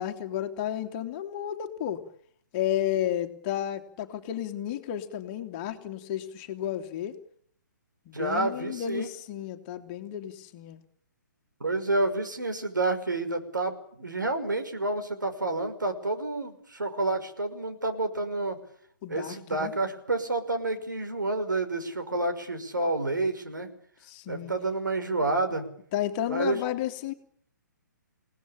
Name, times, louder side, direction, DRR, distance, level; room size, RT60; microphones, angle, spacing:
voice 1, 0.0-2.0 2.5-7.2 8.1-10.8 19.0-19.7 24.0-24.5 25.9-27.1, left 11 dB, 30° left, 6 dB, 2.7 m, -32 dB
voice 2, 8.1-9.1 11.6-18.6 19.1-23.7 24.3-25.7 26.3-26.6, right 2 dB, 75° right, 7 dB, 5.5 m, -29 dB
29.0 x 18.5 x 8.8 m, 0.63 s
figure-of-eight pair, 130°, 10 cm